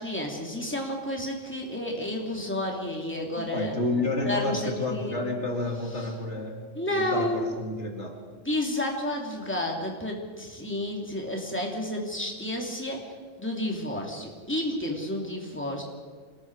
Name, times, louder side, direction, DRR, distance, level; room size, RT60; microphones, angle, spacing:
voice 1, 0.0-3.7 4.3-5.2 6.0-6.1 6.7-7.5 8.4-13.0 13.4-15.8, left 1 dB, 10° left, 0 dB, 3.1 m, -31 dB
voice 2, 3.4-6.6 6.9-8.2, left 2 dB, 55° left, 1 dB, 2.5 m, -30 dB
27.0 x 20.5 x 4.9 m, 1.5 s
omnidirectional pair, 1.5 m